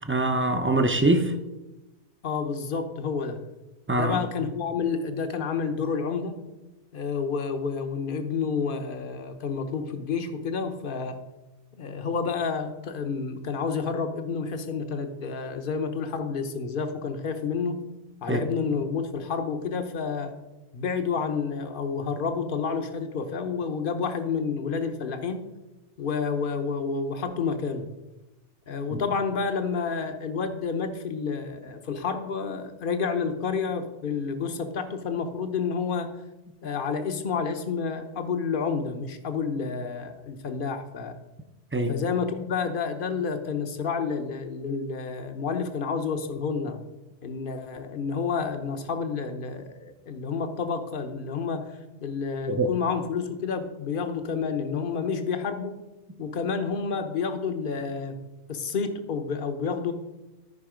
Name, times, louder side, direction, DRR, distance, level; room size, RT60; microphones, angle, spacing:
voice 1, 0.1-1.3 3.9-4.2 18.3-18.4 41.7-41.9 52.5-52.7, right 2 dB, 15° right, 6 dB, 0.6 m, -23 dB
voice 2, 2.2-3.4 3.9-6.3 6.9-11.2 11.8-17.8 18.2-20.3 20.7-25.4 26.0-27.9 28.7-36.1 36.6-41.1 41.9-46.8 47.2-51.7 52.0-55.7 56.2-58.2 58.5-59.9, left 5 dB, 50° left, 7 dB, 1.1 m, -29 dB
13.5 x 5.2 x 5.1 m, 1.0 s
omnidirectional pair, 1.2 m